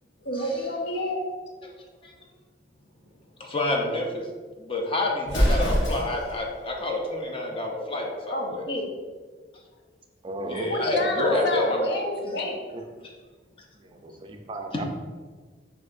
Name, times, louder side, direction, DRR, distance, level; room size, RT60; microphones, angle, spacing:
voice 1, 0.2-1.3 8.3-8.9 10.7-12.6, left 1 dB, 65° left, 1 dB, 0.8 m, -29 dB
voice 2, 3.4-4.3 4.6-8.7 10.5-12.0 14.7-14.8, left 2 dB, 30° left, 0 dB, 0.6 m, -28 dB
Explosion, 5.2-6.4, equal, 90° left, 1.1 m, -23 dB
voice 3, 10.2-10.7 11.3-11.5 13.8-14.8, right 2 dB, 30° right, 4 dB, 0.4 m, -35 dB
6.9 x 2.8 x 2.6 m, 1.5 s
head